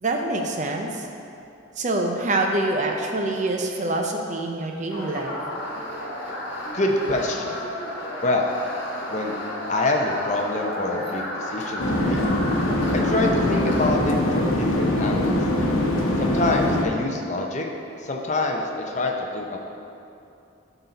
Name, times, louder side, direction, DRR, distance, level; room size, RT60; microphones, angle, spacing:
voice 1, 0.0-1.1 1.8-5.4, right 2 dB, 35° right, 2 dB, 0.5 m, -25 dB
sound 1, 4.9-13.9, left 1 dB, 55° left, 1.5 m, -32 dB
voice 2, 6.7-7.6 8.2-8.5 9.1-9.4 9.7-12.2 12.9-15.4 16.2-17.7 18.0-19.6, left 2 dB, 35° left, 1 dB, 0.6 m, -26 dB
sound 2, 11.8-16.8, left 1 dB, 80° left, 1.0 m, -22 dB
12.0 x 4.0 x 4.0 m, 2.7 s
head